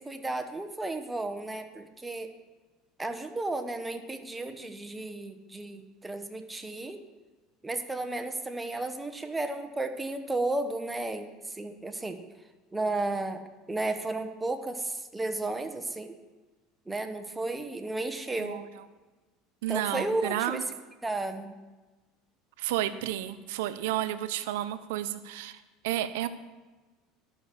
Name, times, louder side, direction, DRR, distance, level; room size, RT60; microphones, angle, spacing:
voice 1, 0.0-2.3 3.0-7.0 7.6-12.2 12.7-16.1 16.9-18.6 19.7-20.6 21.0-21.5, right 2 dB, 10° right, 7 dB, 1.0 m, -33 dB
voice 2, 19.6-20.6 22.6-26.3, right 13 dB, 85° right, 12 dB, 0.7 m, -31 dB
12.0 x 6.2 x 6.8 m, 1.2 s
supercardioid pair, 115°, 0 cm